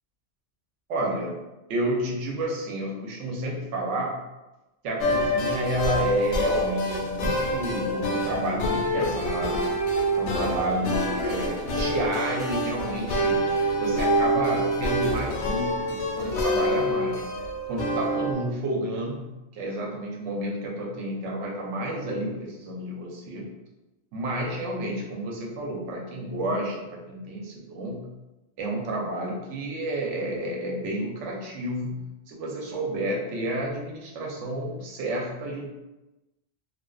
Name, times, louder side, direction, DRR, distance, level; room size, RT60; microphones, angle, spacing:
voice 1, 0.9-1.4 1.7-4.2 4.8-9.6 10.1-13.4 13.8-17.2 17.7-19.2 19.5-23.4 24.1-28.1 28.6-35.7, right 1 dB, 80° right, -2 dB, 0.9 m, -30 dB
sound 1, 5.0-18.3, equal, 75° left, 0.9 m, -26 dB
2.5 x 2.1 x 2.3 m, 1.0 s
omnidirectional pair, 1.2 m